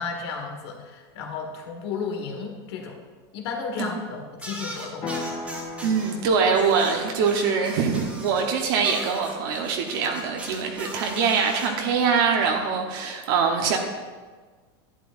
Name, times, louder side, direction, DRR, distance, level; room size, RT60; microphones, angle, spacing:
voice 1, 0.0-3.0 3.3-5.1, left 5 dB, 75° left, 2 dB, 1.6 m, -33 dB
sound 1, 4.4-6.1 6.5-8.4 8.8-11.7, right 1 dB, 10° right, 1.4 m, -39 dB
sound 2, 5.0-9.1, left 3 dB, 40° left, 2.0 m, -38 dB
voice 2, 5.8-13.8, right 5 dB, 60° right, 2 dB, 1.0 m, -23 dB
11.0 x 9.2 x 2.6 m, 1.4 s
supercardioid pair, 155°, 14 cm